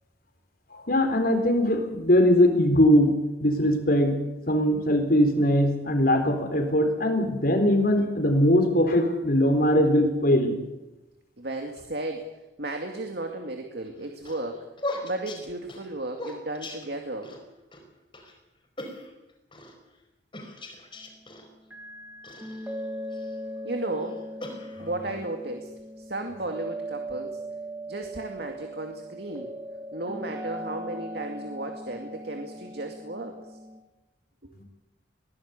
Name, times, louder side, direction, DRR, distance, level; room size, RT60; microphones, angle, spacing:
voice 1, 0.7-3.1 3.4-4.1 4.5-10.5, equal, 50° left, 5 dB, 3.9 m, -21 dB
voice 2, 11.4-12.3 12.6-14.6 15.0-17.3 23.6-24.2 24.8-25.7 26.0-27.4 27.9-29.5 29.9-33.6 34.4-34.5, right 2 dB, 55° right, 4 dB, 2.3 m, -34 dB
sound 1, 13.9-17.4 17.7-17.8 18.1-18.3 18.8-19.8 20.3-21.5 22.2-23.4 23.9-25.1, left 1 dB, 25° left, 4.7 m, -39 dB
sound 2, 21.7-33.8, right 1 dB, 10° right, 3.0 m, -39 dB
22.0 x 17.5 x 8.4 m, 1.0 s
head